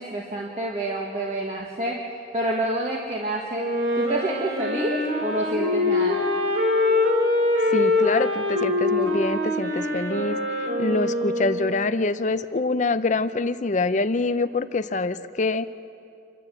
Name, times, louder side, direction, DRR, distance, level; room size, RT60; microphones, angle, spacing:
voice 1, 0.0-2.0 2.3-3.7 3.9-6.2, right 1 dB, 40° right, -2 dB, 1.7 m, -28 dB
Wind instrument woodwind instrument, 3.5-11.9, left 2 dB, 85° right, 3.9 m, -24 dB
voice 2, 7.7-10.4 10.8-15.7, left 3 dB, 45° left, 13 dB, 0.6 m, -25 dB
27.5 x 12.5 x 7.7 m, 2.6 s
head